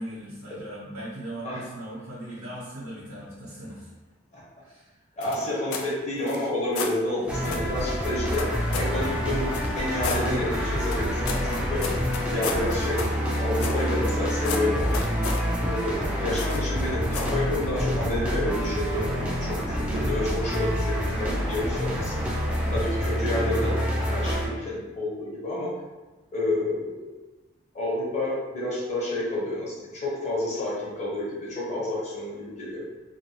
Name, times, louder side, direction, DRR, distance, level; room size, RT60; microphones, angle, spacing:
voice 1, 0.0-3.9 4.6-5.0 5.3-5.5 7.2-7.3, right 1 dB, 80° right, -8 dB, 0.7 m, -39 dB
sound 1, 5.2-5.9 6.2-7.0 7.4-7.7 8.3-9.0 9.5-10.3 10.8-14.2 14.4-15.5 16.4-16.7 17.1-17.4, left 5 dB, 75° left, 0.3 m, -34 dB
voice 2, 5.2-8.4 8.8-11.8 12.3-15.0 15.6-22.2 22.7-23.8 24.1-25.7 26.3-27.1 27.7-32.9, left 1 dB, 35° left, -6 dB, 0.9 m, -29 dB
sound 2, 7.3-24.5, equal, 5° right, 0.3 m, -27 dB
2.6 x 2.2 x 2.7 m, 1.1 s
head